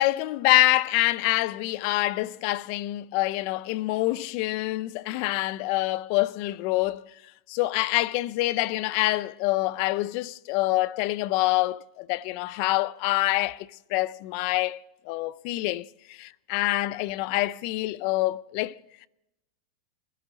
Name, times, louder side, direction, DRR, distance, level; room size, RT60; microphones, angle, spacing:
voice 1, 0.0-7.0 7.5-14.8 15.1-18.8, left 18 dB, 50° left, 0.5 m, -26 dB
21.5 x 12.5 x 4.1 m
supercardioid pair, 145°, 3 cm